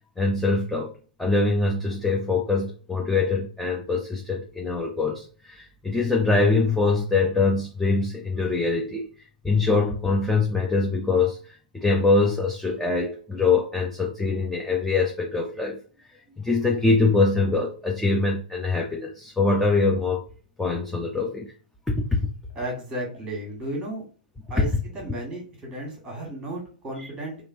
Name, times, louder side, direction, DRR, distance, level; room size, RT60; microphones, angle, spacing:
voice 1, 0.2-0.9 1.2-9.1 9.4-15.8 16.4-20.2 20.6-21.5 21.9-22.2 24.6-24.7 27.0-27.1, left 3 dB, 5° left, -2 dB, 0.5 m, -23 dB
voice 2, 22.5-24.0 24.5-27.4, right 1 dB, 10° right, -2 dB, 1.5 m, -34 dB
3.0 x 2.5 x 2.6 m, 0.40 s
figure-of-eight pair, 110°, 5 cm